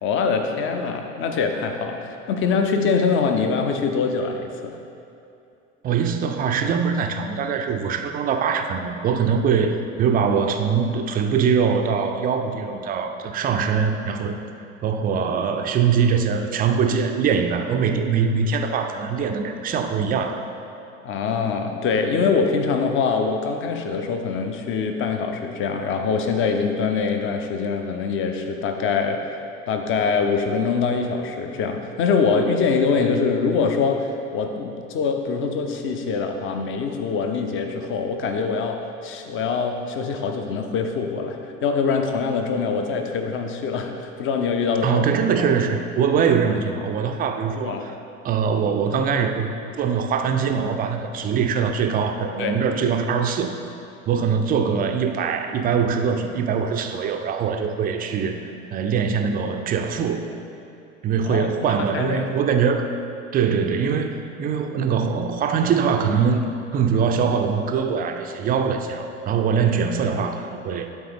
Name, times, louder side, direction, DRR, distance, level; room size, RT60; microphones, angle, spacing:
voice 1, 0.0-4.8 21.0-29.2 29.7-45.0 45.4-45.5 47.6-47.9 52.4-52.6 61.2-61.5 61.9-62.2, left 5 dB, 30° left, 5 dB, 0.7 m, -24 dB
voice 2, 5.8-14.3 14.8-20.4 44.8-47.9 48.2-53.6 54.1-58.4 58.7-60.3 61.0-62.9 63.3-66.4 66.7-70.9, right 6 dB, 25° right, 5 dB, 0.5 m, -22 dB
12.0 x 4.1 x 3.6 m, 2.7 s
figure-of-eight pair, 70°, 39 cm